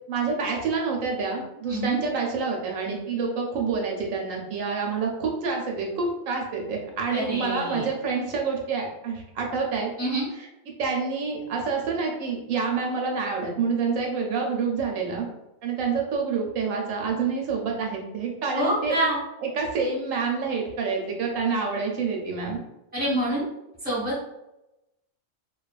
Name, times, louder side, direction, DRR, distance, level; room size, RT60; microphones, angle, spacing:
voice 1, 0.1-9.9 10.4-10.5 10.8-15.3 15.6-18.9 19.5-22.6, right 5 dB, 80° right, 0 dB, 1.0 m, -27 dB
voice 2, 7.1-7.8 10.0-10.2 18.5-19.2 22.9-23.4 23.8-24.3, right 1 dB, 5° right, -7 dB, 1.1 m, -26 dB
2.7 x 2.3 x 2.3 m, 0.92 s
omnidirectional pair, 1.4 m